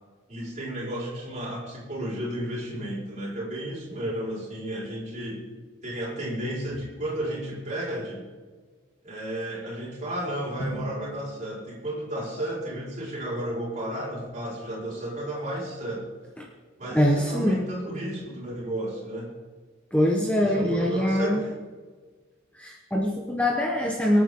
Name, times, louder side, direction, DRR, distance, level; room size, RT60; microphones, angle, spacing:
voice 1, 0.3-5.5 5.8-8.2 9.0-16.1 16.8-19.3 20.4-21.5, right 1 dB, 35° right, -5 dB, 5.3 m, -33 dB
Drum, 10.6-13.2, equal, 70° left, 4.2 m, -39 dB
voice 2, 16.9-17.7 19.9-21.4 22.5-24.2, left 1 dB, 5° left, -1 dB, 1.2 m, -23 dB
23.5 x 8.8 x 3.8 m, 1.4 s
head